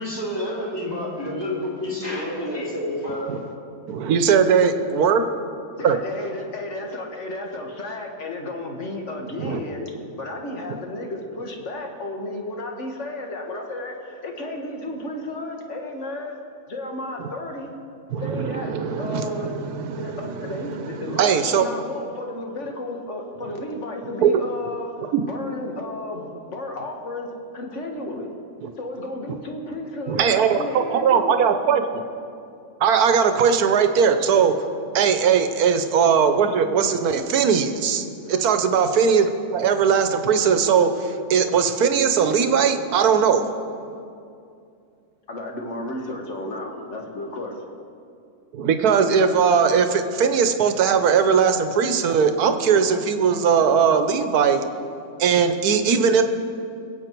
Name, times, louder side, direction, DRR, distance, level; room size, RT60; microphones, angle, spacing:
voice 1, 0.0-3.4, left 1 dB, 15° left, -6 dB, 3.4 m, -29 dB
voice 2, 3.9-5.2 5.8-6.0 9.4-9.6 17.2-17.3 18.1-21.7 24.2-24.3 25.1-25.2 28.6-28.7 30.1-31.8 32.8-34.5 34.9-43.4 48.5-54.6 55.2-56.2, right 6 dB, 75° right, 8 dB, 1.4 m, -19 dB
voice 3, 5.7-16.3 16.7-17.7 18.2-19.5 20.0-24.9 25.3-27.3 27.5-28.3 28.8-31.4 38.2-38.4 45.3-47.7, left 2 dB, 50° left, 1 dB, 1.8 m, -33 dB
21.5 x 8.2 x 4.5 m, 2.5 s
omnidirectional pair, 1.6 m